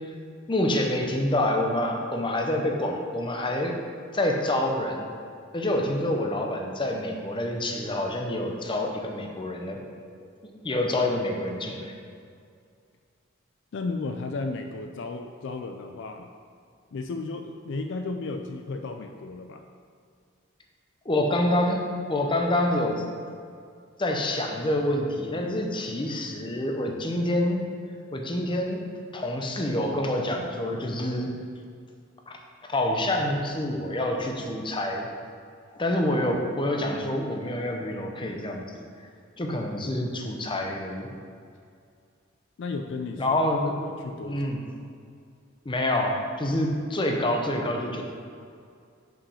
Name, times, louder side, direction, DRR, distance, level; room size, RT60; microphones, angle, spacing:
voice 1, 0.5-3.8 4.1-5.1 5.5-9.8 10.2-10.3 10.6-11.9 21.0-21.8 22.1-23.0 24.0-27.6 28.1-28.8 29.1-31.3 32.3-32.4 32.7-35.1 35.7-38.7 39.4-41.1 43.2-43.7 44.2-44.6 45.6-48.0, left 1 dB, 25° left, 2 dB, 0.7 m, -27 dB
voice 2, 13.7-16.3 16.9-19.6 42.6-43.4 44.0-44.5, left 3 dB, 60° left, 5 dB, 0.4 m, -34 dB
5.8 x 5.0 x 5.6 m, 2.3 s
head